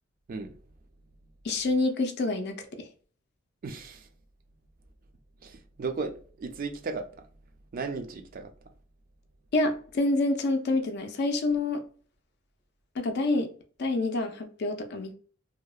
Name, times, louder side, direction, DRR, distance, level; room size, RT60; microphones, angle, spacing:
voice 1, 1.4-2.9 9.5-11.8 13.0-13.5 13.8-15.1, left 2 dB, 55° left, 0.4 m, -27 dB
voice 2, 3.6-4.1 5.4-7.1 7.7-8.5, right 4 dB, 45° right, 0.4 m, -35 dB
2.7 x 2.0 x 2.3 m
head